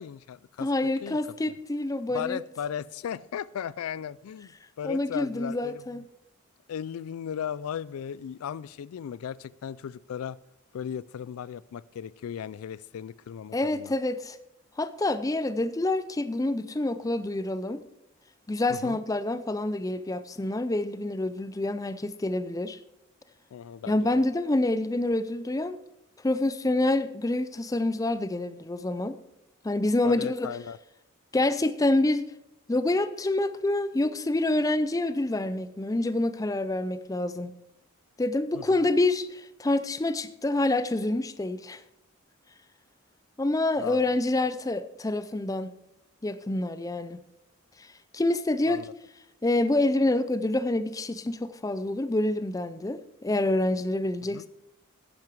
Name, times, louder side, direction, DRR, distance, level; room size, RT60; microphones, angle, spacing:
voice 1, 0.0-1.2 2.1-6.0 6.7-10.4 10.7-13.9 18.7-19.0 23.5-24.2 30.0-30.8 38.5-38.9 43.8-44.2 48.7-48.9 54.3-54.4, left 8 dB, 80° left, 0.3 m, -36 dB
voice 2, 0.6-2.4 4.8-6.0 13.5-14.4 14.8-17.8 18.5-22.8 23.9-25.8 26.2-29.2 29.6-30.5 31.3-32.3 32.7-37.5 38.2-41.8 43.4-45.7 46.2-47.2 47.8-47.9 48.1-48.8 49.4-54.5, left 2 dB, 15° left, 0.4 m, -27 dB
10.5 x 10.5 x 4.7 m
head